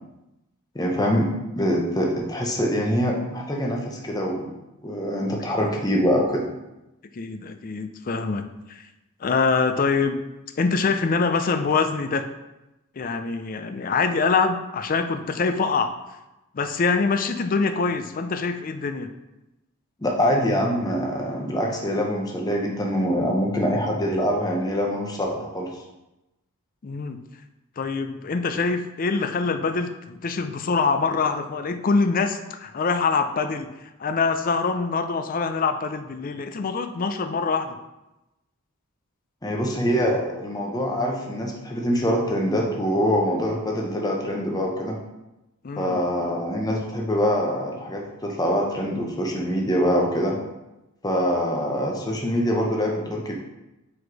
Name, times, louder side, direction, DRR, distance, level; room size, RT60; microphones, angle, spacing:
voice 1, 0.7-1.3 1.6-4.5 4.8-6.4 20.0-25.7 39.4-45.0 45.8-50.4 51.0-53.3, equal, 15° left, 0 dB, 0.8 m, -24 dB
voice 2, 7.1-8.8 9.2-10.2 10.6-12.3 13.0-15.9 16.5-19.1 26.8-27.2 27.8-33.7 34.0-37.8 45.6-46.0, left 4 dB, 40° left, 8 dB, 0.4 m, -24 dB
4.9 x 4.2 x 4.6 m, 0.97 s
head